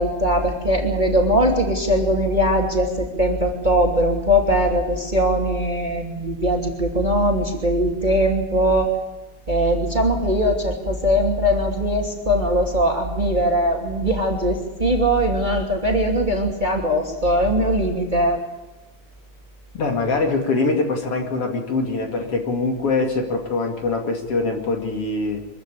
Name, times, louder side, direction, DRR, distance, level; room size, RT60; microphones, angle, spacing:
voice 1, 0.0-8.9 9.5-18.4, equal, 15° right, 2 dB, 2.8 m, -20 dB
voice 2, 19.7-25.5, left 3 dB, 50° left, 3 dB, 3.3 m, -23 dB
24.5 x 15.5 x 8.6 m, 1.1 s
omnidirectional pair, 3.3 m